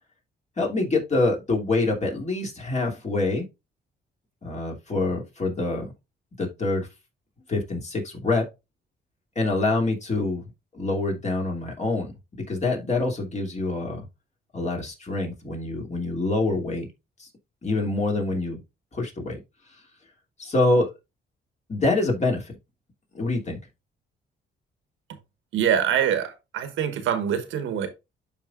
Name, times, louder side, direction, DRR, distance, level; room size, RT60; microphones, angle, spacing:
voice 1, 0.6-3.5 4.4-5.9 6.4-6.9 7.5-8.5 9.4-10.4 10.7-14.1 14.5-16.9 17.2-17.3 17.6-18.6 18.9-19.4 20.4-20.9 21.7-22.5 23.1-23.6, left 2 dB, 35° left, 2.7 m, -26 dB
voice 2, 25.5-27.9, right 9 dB, 80° right, 1.2 m, -24 dB
11.5 x 4.2 x 2.4 m
cardioid pair, 90°, 20 cm